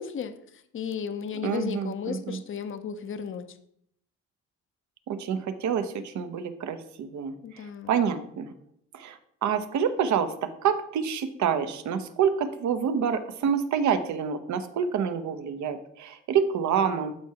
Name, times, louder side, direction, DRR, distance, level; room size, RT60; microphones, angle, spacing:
voice 1, 0.0-3.6 7.4-8.0, left 7 dB, 45° left, 10 dB, 0.7 m, -34 dB
voice 2, 1.4-2.4 5.1-8.5 8.9-17.1, right 7 dB, 70° right, 9 dB, 0.8 m, -27 dB
12.0 x 4.7 x 2.8 m, 0.71 s
cardioid pair, 90°, 30 cm